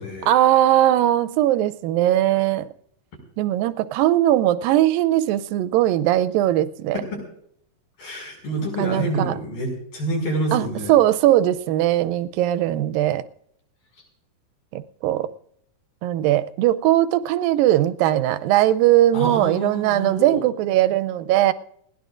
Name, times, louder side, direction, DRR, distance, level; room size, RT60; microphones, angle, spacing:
voice 1, 0.3-2.7 3.4-7.0 8.8-9.3 10.5-13.2 14.7-15.3 16.0-21.5, right 13 dB, 90° right, 15 dB, 2.4 m, -19 dB
voice 2, 8.0-10.9 19.1-20.4, right 1 dB, 80° left, 1 dB, 7.9 m, -27 dB
21.0 x 17.5 x 2.6 m, 0.69 s
omnidirectional pair, 4.0 m